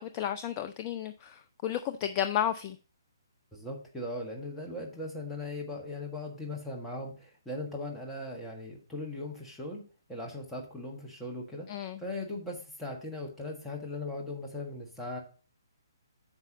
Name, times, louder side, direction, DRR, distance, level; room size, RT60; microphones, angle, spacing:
voice 1, 0.0-2.8 11.7-12.0, left 10 dB, 25° left, 0.5 m, -32 dB
voice 2, 3.5-9.8 10.1-15.2, left 2 dB, 5° left, 1.5 m, -39 dB
9.7 x 6.1 x 2.8 m
figure-of-eight pair, 130°, 2 cm